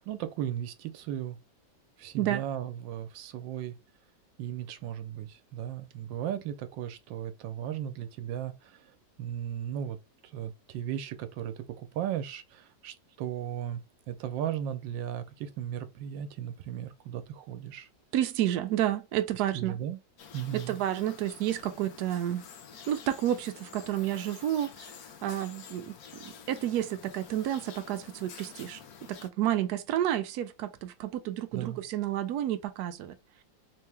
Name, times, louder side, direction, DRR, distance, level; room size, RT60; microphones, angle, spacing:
voice 1, 0.1-1.4 2.0-3.7 4.4-8.9 9.2-10.0 10.2-17.9 19.5-20.0 20.3-20.8 31.5-31.8, right 10 dB, 90° right, 1.4 m, -36 dB
voice 2, 18.1-19.8 20.5-22.4 22.9-24.9 25.2-28.8 29.1-33.2, right 12 dB, 70° right, 1.0 m, -30 dB
sound 1, 20.2-29.3, left 7 dB, 65° left, 1.1 m, -49 dB
3.7 x 2.7 x 3.3 m
omnidirectional pair, 2.0 m